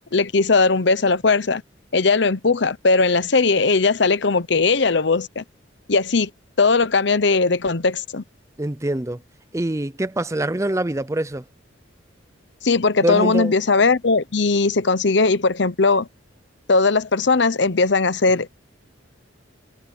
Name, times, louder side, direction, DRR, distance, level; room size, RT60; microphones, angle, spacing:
voice 1, 0.1-1.6 1.9-5.4 5.9-6.3 6.6-8.2 12.6-16.1 16.7-18.5, left 4 dB, 65° left, 0.9 m, -18 dB
voice 2, 8.6-9.2 9.5-11.4 13.0-13.5, right 1 dB, 15° right, 0.5 m, -24 dB
head